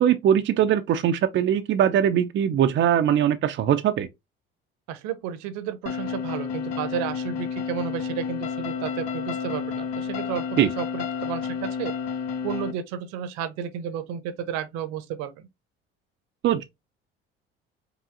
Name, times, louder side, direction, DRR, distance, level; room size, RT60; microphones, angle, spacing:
voice 1, 0.0-4.1 10.6-10.7 16.4-16.6, right 9 dB, 40° right, 0.5 m, -21 dB
voice 2, 4.9-10.4 10.8-11.9 12.4-15.5, right 9 dB, 65° right, 0.8 m, -32 dB
sound 1, 5.9-12.7, left 6 dB, 55° left, 0.7 m, -30 dB
4.8 x 2.7 x 2.5 m
hypercardioid pair, 60°, 30 cm